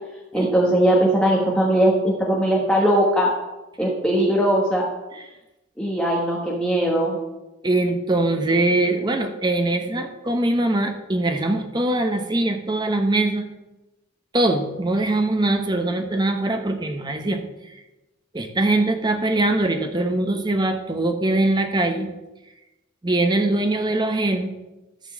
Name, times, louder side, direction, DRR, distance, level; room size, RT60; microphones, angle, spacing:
voice 1, 0.3-3.3 3.8-4.8 5.8-7.2, right 1 dB, 5° left, -4 dB, 1.3 m, -19 dB
voice 2, 7.6-13.5 14.3-17.4 18.3-22.1 23.0-24.5, right 2 dB, 20° right, 5 dB, 0.9 m, -22 dB
12.5 x 4.5 x 7.3 m, 1.0 s
head